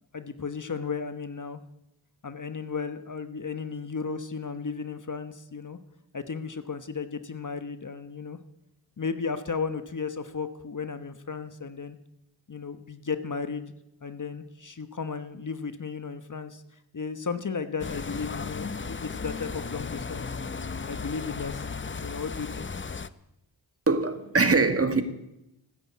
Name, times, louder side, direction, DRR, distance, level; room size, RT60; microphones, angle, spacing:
voice 1, 0.1-1.6 2.2-5.8 6.1-8.4 9.0-12.0 12.5-13.7 14.0-16.6 16.9-20.4 20.8-21.6 22.0-22.7, left 5 dB, 40° left, 1.3 m, -34 dB
sound 1, 17.8-23.1, left 5 dB, 25° left, 0.7 m, -35 dB
voice 2, 23.9-25.0, right 3 dB, 30° right, 2.0 m, -22 dB
15.5 x 9.8 x 8.6 m
cardioid pair, 50°, 46 cm